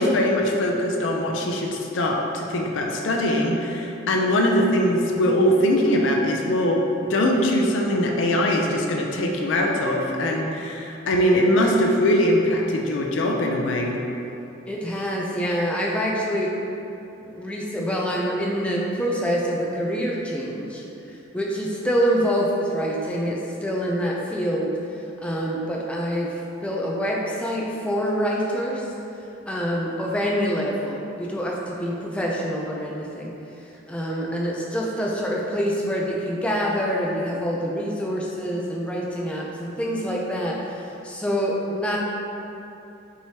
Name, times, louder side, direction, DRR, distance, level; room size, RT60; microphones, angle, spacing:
voice 1, 0.0-6.8 7.1-14.0, left 1 dB, 70° left, 1 dB, 0.4 m, -21 dB
voice 2, 14.7-16.5 17.2-24.7 25.2-26.3 26.6-28.8 29.5-33.3 33.9-42.0, equal, 5° left, -3 dB, 0.3 m, -26 dB
4.7 x 3.0 x 2.8 m, 2.8 s
head